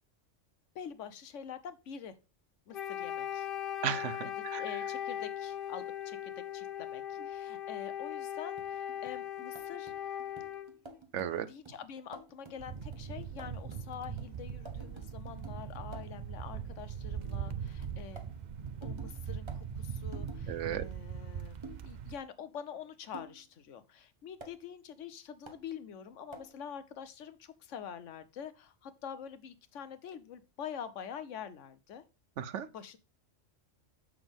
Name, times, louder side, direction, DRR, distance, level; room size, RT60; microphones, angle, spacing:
voice 1, 0.7-2.1 2.7-3.5 4.6-9.9 11.5-18.3 18.8-32.0 32.7-33.0, left 8 dB, 80° left, 1.1 m, -46 dB
Wind instrument woodwind instrument, 2.7-10.7, left 10 dB, 50° left, 0.9 m, -39 dB
voice 2, 3.8-4.6 11.1-11.5 20.5-20.9 32.4-32.7, right 9 dB, 75° right, 1.0 m, -35 dB
sound 1, 8.6-16.2 17.8-20.4 21.6-21.9 23.1-23.4 24.4-24.6 25.5-25.6 26.3-26.6, right 2 dB, 25° right, 1.0 m, -52 dB
sound 2, 12.6-22.2, right 7 dB, 55° right, 0.5 m, -41 dB
7.1 x 6.3 x 3.5 m
omnidirectional pair, 1.3 m